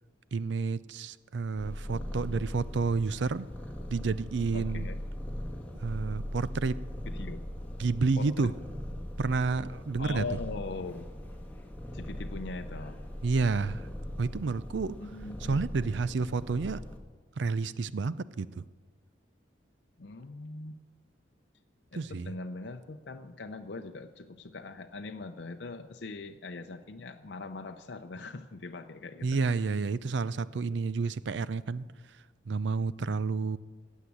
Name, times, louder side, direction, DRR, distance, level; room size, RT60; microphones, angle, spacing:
voice 1, 0.3-3.5 3.9-4.9 5.8-6.8 7.8-8.5 9.2-10.2 13.2-13.9 14.2-15.0 15.4-16.8 17.4-18.6 21.9-22.3 29.2-31.9 32.5-33.6, right 4 dB, 70° right, 17 dB, 0.4 m, -30 dB
Purr, 1.6-17.0, equal, 10° left, 1.7 m, -40 dB
voice 2, 4.5-5.0 7.1-7.4 8.2-8.5 10.0-11.1 11.9-13.0 15.0-15.6 20.0-20.8 21.9-29.4, left 3 dB, 65° left, 5 dB, 0.6 m, -41 dB
15.5 x 8.2 x 8.4 m, 1.4 s
head